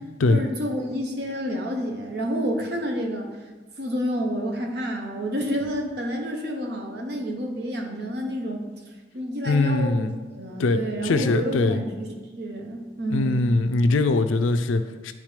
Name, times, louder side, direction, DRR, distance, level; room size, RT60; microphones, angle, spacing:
voice 1, 0.3-3.3 3.8-8.6 9.1-13.5, equal, 55° right, 2 dB, 0.9 m, -29 dB
voice 2, 9.5-10.1 10.6-11.8 13.1-15.1, left 2 dB, 85° left, 10 dB, 0.4 m, -22 dB
9.8 x 3.6 x 3.2 m, 1.3 s
head